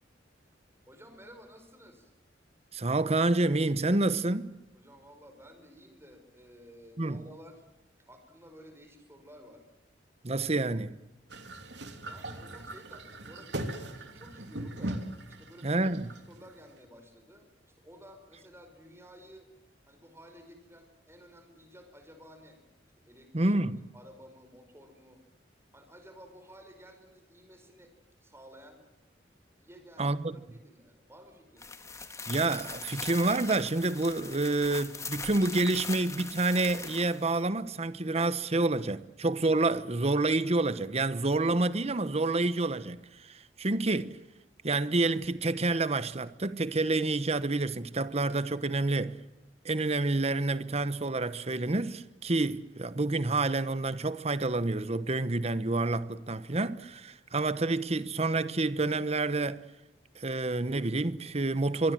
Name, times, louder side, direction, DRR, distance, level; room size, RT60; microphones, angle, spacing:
voice 1, 0.9-2.1 4.7-7.7 8.1-9.6 12.0-19.5 19.9-22.6 23.0-23.5 23.9-25.2 25.7-27.9 28.2-28.8 29.6-31.8, equal, 15° right, 5.3 m, -53 dB
voice 2, 2.7-4.5 7.0-7.2 10.2-10.9 15.6-16.1 23.3-23.8 30.0-30.3 32.3-44.2 44.6-49.2 49.6-59.7 60.2-61.9, right 2 dB, 35° right, 1.0 m, -28 dB
sound 1, 11.3-16.6, right 1 dB, 70° right, 3.1 m, -39 dB
sound 2, 31.6-37.4, left 4 dB, 15° left, 1.7 m, -41 dB
25.0 x 23.5 x 7.6 m
head